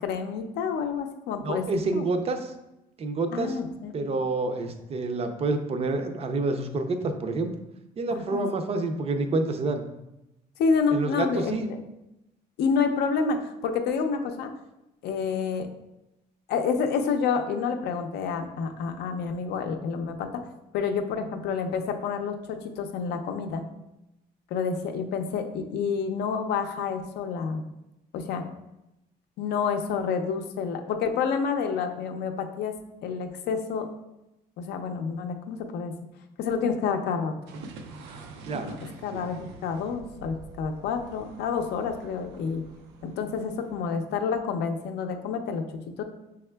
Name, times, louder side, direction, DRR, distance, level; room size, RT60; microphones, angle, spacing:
voice 1, 0.0-1.6 1.9-2.1 3.3-3.9 8.1-8.4 10.6-11.6 12.6-14.5 15.0-15.7 16.5-20.3 20.7-23.6 24.5-27.6 28.1-28.4 29.4-32.8 33.0-33.9 34.6-35.9 36.4-37.3 38.6-38.8 39.0-42.6 43.0-45.6 46.0-46.1, left 5 dB, 75° left, 6 dB, 0.5 m, -28 dB
voice 2, 1.4-2.5 3.0-3.6 3.9-7.5 8.0-9.8 10.9-11.7 38.4-38.8 39.1-39.2, right 3 dB, 35° right, 7 dB, 0.5 m, -28 dB
sound 1, 37.5-43.8, right 3 dB, 90° right, 0.5 m, -45 dB
5.6 x 3.5 x 2.2 m, 0.92 s
cardioid pair, 110°, 17 cm